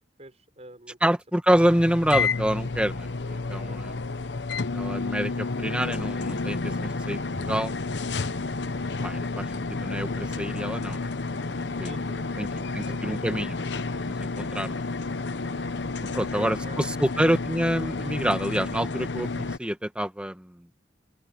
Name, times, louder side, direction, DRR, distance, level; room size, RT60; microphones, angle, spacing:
voice 1, 0.2-1.1 3.3-3.8 11.7-13.0 15.4-16.9 17.1-17.3, right 1 dB, 35° right, 6.1 m, -47 dB
voice 2, 1.0-4.0 4.7-7.7 9.0-11.1 11.5-11.9 12.4-12.5 12.7-14.8 16.1-20.7, equal, 5° right, 1.5 m, -27 dB
sound 1, 1.5-19.6, left 3 dB, 70° left, 0.9 m, -31 dB
open air
head